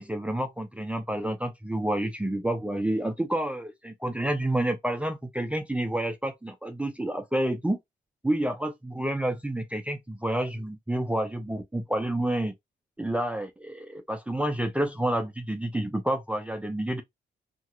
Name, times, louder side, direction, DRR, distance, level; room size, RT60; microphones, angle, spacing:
voice 1, 0.0-7.8 8.2-12.5 13.0-17.0, right 1 dB, 5° right, 0.5 m, -29 dB
2.9 x 2.8 x 2.3 m
cardioid pair, 90°, 20 cm